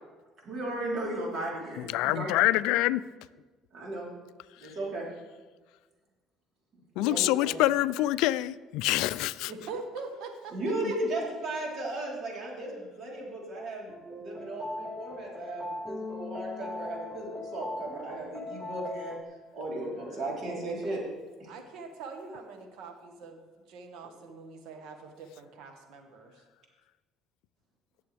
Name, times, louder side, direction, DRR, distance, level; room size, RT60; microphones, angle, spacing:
voice 1, 0.4-2.3 3.7-4.1 4.6-5.1 7.0-7.6 10.5-19.2 19.5-21.0 21.4-21.5, right 1 dB, 55° right, -3 dB, 3.7 m, -35 dB
voice 2, 1.8-3.0 7.0-9.5, left 16 dB, 80° left, 17 dB, 0.3 m, -26 dB
voice 3, 9.5-10.5 21.5-23.4 23.7-26.3, right 4 dB, 75° right, 4 dB, 1.6 m, -43 dB
sound 1, 13.9-19.2, left 2 dB, 10° right, 1.0 m, -39 dB
17.5 x 6.9 x 3.4 m, 1.3 s
supercardioid pair, 90°, 0 cm